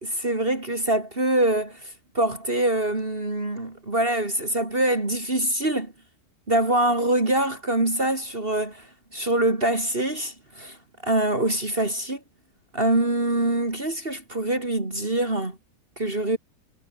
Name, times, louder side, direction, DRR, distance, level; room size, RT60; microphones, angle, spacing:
voice 1, 0.0-5.9 6.5-8.9 9.1-10.8 11.0-12.2 12.7-15.6 16.0-16.4, right 1 dB, 35° right, 3.7 m, -24 dB
omnidirectional pair, 1.8 m